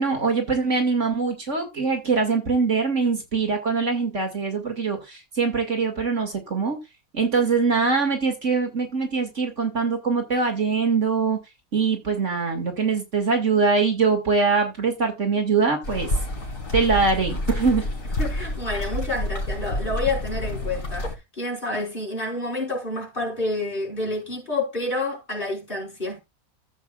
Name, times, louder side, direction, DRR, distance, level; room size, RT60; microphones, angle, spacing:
voice 1, 0.0-5.0 5.4-6.8 7.1-11.4 11.7-16.1 16.7-17.8, right 4 dB, 55° right, 2.6 m, -23 dB
sound 1, 15.8-21.1, left 1 dB, 65° left, 2.7 m, -28 dB
voice 2, 18.2-26.2, left 2 dB, 35° left, 5.4 m, -29 dB
14.0 x 7.9 x 2.4 m
omnidirectional pair, 1.5 m